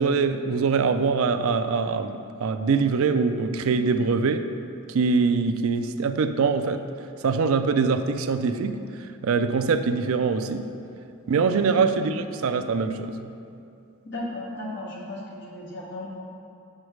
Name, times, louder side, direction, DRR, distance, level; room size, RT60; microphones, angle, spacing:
voice 1, 0.0-4.4 4.9-6.8 7.2-8.8 9.2-10.6 11.3-13.3, right 5 dB, 70° right, 8 dB, 0.4 m, -23 dB
voice 2, 14.0-16.1, left 1 dB, 50° left, -5 dB, 1.6 m, -35 dB
7.9 x 6.3 x 3.2 m, 2.5 s
head